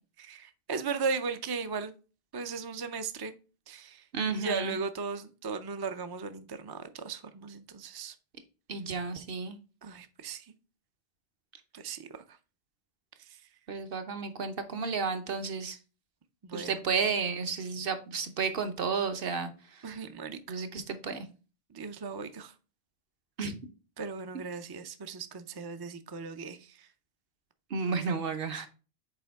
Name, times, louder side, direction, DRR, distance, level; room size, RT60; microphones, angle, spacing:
voice 1, 0.2-1.9 2.3-3.4 3.7-4.0 4.3-8.1 9.8-10.5 11.7-12.4 13.2-13.4 16.4-16.8 19.8-20.6 21.7-22.5 24.0-26.9, right 5 dB, 40° right, 0.3 m, -37 dB
voice 2, 4.1-4.8 8.7-9.6 13.7-15.8 16.5-19.8 20.5-21.3 23.4-23.5 27.7-28.7, right 5 dB, 55° right, 0.9 m, -32 dB
6.9 x 4.3 x 3.4 m
omnidirectional pair, 1.2 m